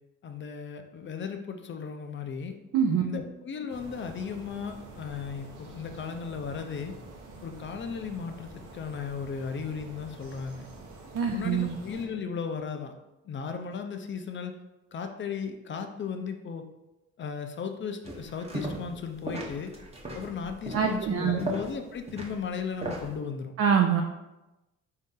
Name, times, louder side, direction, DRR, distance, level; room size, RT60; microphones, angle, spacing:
voice 1, 0.2-2.6 3.0-7.0 7.4-10.7 11.3-12.9 13.3-14.6 14.9-16.7 17.2-19.7 20.1-23.5, left 6 dB, 40° left, 6 dB, 0.5 m, -36 dB
voice 2, 2.7-3.0 11.1-11.7 20.7-21.4 23.6-24.0, right 7 dB, 50° right, 2 dB, 0.4 m, -24 dB
sound 1, 3.7-12.1, right 2 dB, 90° right, 0.8 m, -47 dB
sound 2, 18.0-19.0 19.2-23.1, right 1 dB, 20° right, 0.8 m, -37 dB
4.0 x 2.7 x 3.7 m, 0.99 s
cardioid pair, 90°, 30 cm